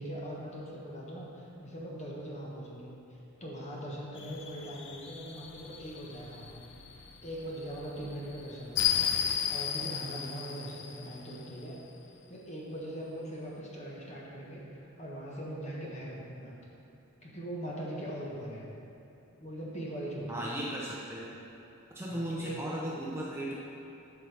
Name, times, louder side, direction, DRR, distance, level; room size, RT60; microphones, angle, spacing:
voice 1, 0.0-2.9 3.4-6.6 7.2-9.1 9.5-11.8 12.3-16.6 17.2-18.6 19.4-20.6 22.1-22.6, right 1 dB, 30° left, -4 dB, 1.4 m, -41 dB
sound 1, 4.2-11.6, left 8 dB, 55° left, 0.5 m, -35 dB
voice 2, 20.3-21.3 21.9-23.5, right 1 dB, 10° right, -5 dB, 0.7 m, -36 dB
11.5 x 5.8 x 3.5 m, 3.0 s
head